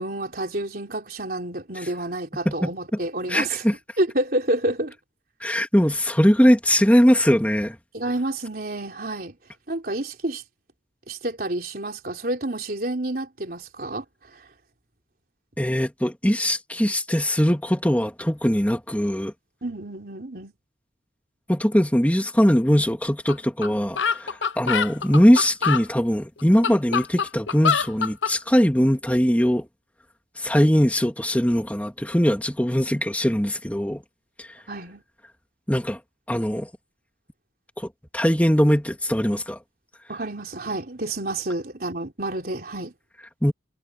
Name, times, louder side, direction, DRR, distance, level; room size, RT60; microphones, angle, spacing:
voice 1, 0.0-3.6 4.0-4.9 7.9-9.4 9.7-10.4 11.1-14.0 14.3-14.5 19.6-20.5 34.7-35.0 40.1-42.9, right 1 dB, 55° right, 3.7 m, -29 dB
voice 2, 3.3-3.7 5.4-7.8 15.6-19.3 21.5-29.6 30.4-34.0 34.4-34.6 35.7-36.0 36.3-36.7 37.8-37.9 38.1-39.6 43.4-43.5, equal, 10° left, 2.7 m, -21 dB
sound 1, 23.3-23.4 23.6-23.7 24.0-25.8 26.4-28.3, left 6 dB, 90° left, 0.9 m, -24 dB
head